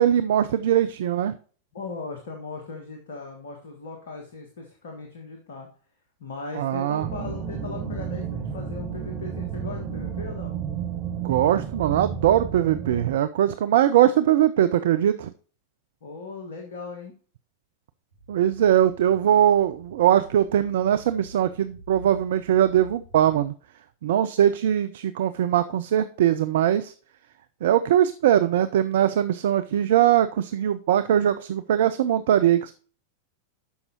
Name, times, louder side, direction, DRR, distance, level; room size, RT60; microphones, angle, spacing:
voice 1, 0.0-1.3 6.6-7.1 11.2-15.3 18.3-23.5 24.0-26.9 27.6-32.7, right 11 dB, 55° right, 12 dB, 0.4 m, -21 dB
voice 2, 1.7-5.7 6.2-10.6 16.0-17.1, left 4 dB, 60° left, 3 dB, 1.5 m, -38 dB
sound 1, 7.0-13.2, right 7 dB, 35° right, 1.8 m, -32 dB
sound 2, 18.1-23.5, right 1 dB, 80° right, 1.5 m, -47 dB
12.5 x 5.4 x 2.9 m, 0.41 s
figure-of-eight pair, 90°, 0 cm